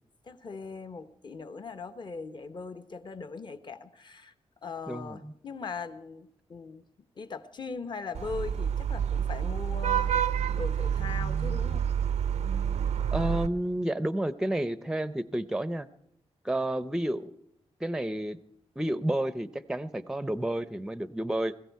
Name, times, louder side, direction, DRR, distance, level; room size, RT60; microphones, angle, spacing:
voice 1, 0.2-4.3 4.6-6.8 7.2-11.9, left 4 dB, 45° left, 12 dB, 0.9 m, -40 dB
voice 2, 4.9-5.3 13.1-15.9 16.4-17.3 17.8-18.4 18.8-21.5, right 1 dB, 5° right, 15 dB, 0.5 m, -30 dB
Vehicle horn car horn honking / Traffic noise roadway noise, 8.1-13.5, right 8 dB, 90° right, 0.5 m, -28 dB
20.5 x 14.5 x 4.7 m, 0.74 s
wide cardioid pair, 135°, 11 cm